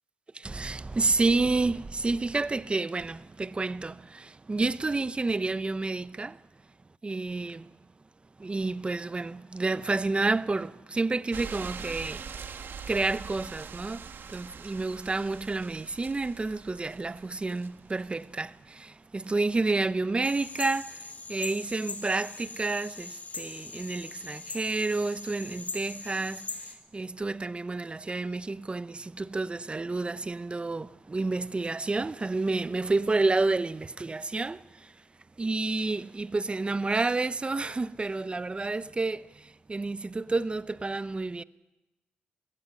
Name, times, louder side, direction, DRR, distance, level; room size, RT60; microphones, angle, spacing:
voice 1, 0.3-6.4 7.0-7.7 8.4-12.6 12.9-34.9 35.4-41.4, right 3 dB, 25° right, 0.8 m, -30 dB
sound 1, 11.3-18.2 19.2-19.3, right 6 dB, 60° right, 1.4 m, -43 dB
sound 2, 20.2-26.7, left 3 dB, 40° left, 3.8 m, -41 dB
21.0 x 16.5 x 10.0 m
cardioid pair, 65°, 4 cm